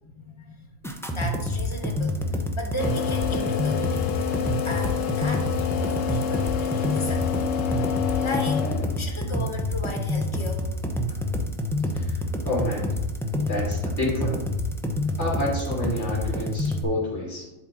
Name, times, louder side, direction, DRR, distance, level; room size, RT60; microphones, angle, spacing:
voice 1, 0.0-7.4 7.7-10.7 11.0-11.7 12.1-12.4, left 1 dB, 25° left, 2 dB, 1.2 m, -37 dB
sound 1, 0.8-16.8, left 1 dB, 5° left, 0.4 m, -27 dB
sound 2, 2.8-9.1, left 8 dB, 75° left, 1.0 m, -28 dB
voice 2, 11.9-12.9 13.5-14.4 15.2-17.5, left 1 dB, 55° left, -5 dB, 3.2 m, -29 dB
11.5 x 4.3 x 3.8 m, 1.0 s
omnidirectional pair, 1.4 m